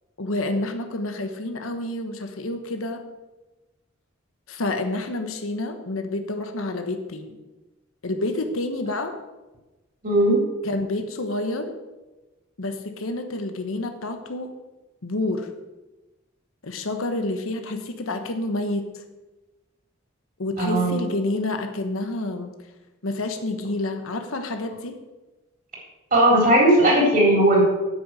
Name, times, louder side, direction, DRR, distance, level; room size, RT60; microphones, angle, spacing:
voice 1, 0.2-3.0 4.5-7.4 8.0-9.1 10.6-11.7 12.6-14.5 15.0-15.5 16.6-19.0 20.4-22.5 23.0-25.0, left 2 dB, 85° left, 7 dB, 1.2 m, -28 dB
voice 2, 10.0-10.4 20.6-20.9 26.1-27.6, right 1 dB, 45° right, -2 dB, 3.9 m, -17 dB
8.9 x 6.4 x 7.6 m, 1.1 s
head